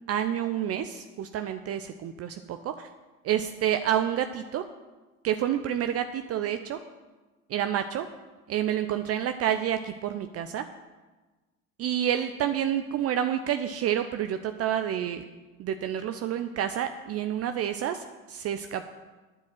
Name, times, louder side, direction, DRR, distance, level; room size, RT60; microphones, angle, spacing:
voice 1, 0.1-2.9 3.2-4.6 5.2-6.8 7.5-8.1 8.5-10.6 11.8-15.3 15.6-18.8, right 10 dB, 35° right, 9 dB, 0.7 m, -29 dB
9.8 x 7.8 x 7.7 m, 1.2 s
figure-of-eight pair, 70°, 41 cm